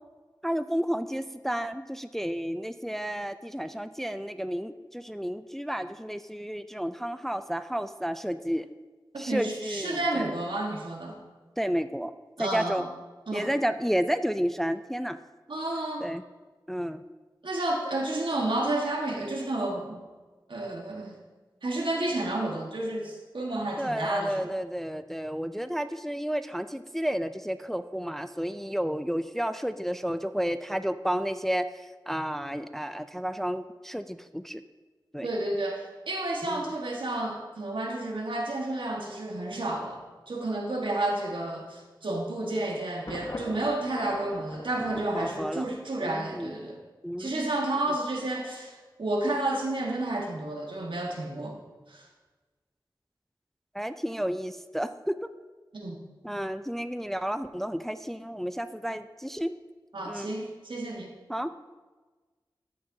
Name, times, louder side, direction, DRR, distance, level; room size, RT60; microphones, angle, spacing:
voice 1, 0.4-8.7 9.2-10.3 11.6-12.1 12.4-12.9 13.3-15.2 16.0-16.2 16.7-17.0 23.8-34.6 35.1-35.3 36.4-36.7 45.1-45.7 46.0-46.5 47.0-47.5 53.7-55.1 56.2-59.5 60.1-60.3 61.3-61.5, equal, 5° left, 11 dB, 0.3 m, -31 dB
voice 2, 9.2-11.2 12.4-12.8 13.3-13.5 15.5-16.1 17.4-20.0 20.5-21.2 21.6-24.5 35.2-46.8 47.2-51.6 51.9-52.1 55.7-56.0 59.9-61.1, right 2 dB, 80° right, -1 dB, 1.4 m, -31 dB
Thunder, 43.1-46.1, left 1 dB, 45° left, 1.0 m, -42 dB
13.0 x 6.7 x 2.7 m, 1.3 s
wide cardioid pair, 75°, 8 cm